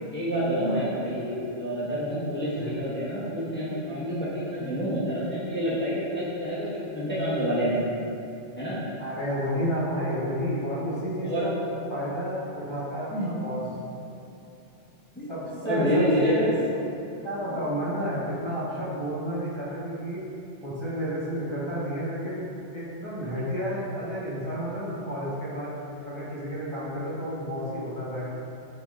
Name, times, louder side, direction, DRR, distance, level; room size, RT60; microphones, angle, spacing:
voice 1, 0.1-7.9 8.6-8.8 11.2-11.5 13.1-13.3 15.1-15.3 15.6-16.4, equal, 10° left, -10 dB, 1.2 m, -28 dB
voice 2, 9.0-13.6 15.3-16.5 17.2-20.2 20.6-25.7 26.0-28.2, equal, 25° right, -10 dB, 1.4 m, -31 dB
9.9 x 4.0 x 2.5 m, 2.7 s
omnidirectional pair, 1.1 m